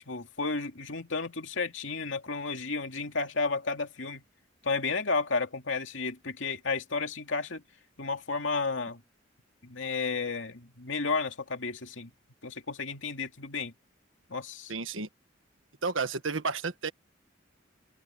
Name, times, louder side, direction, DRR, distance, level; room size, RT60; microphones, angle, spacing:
voice 1, 0.1-4.2 4.6-7.6 8.0-9.0 9.6-12.1 12.4-13.7 14.3-14.7, left 4 dB, 75° left, 2.6 m, -32 dB
voice 2, 14.7-15.1 15.8-16.9, right 4 dB, 85° right, 1.5 m, -31 dB
open air
head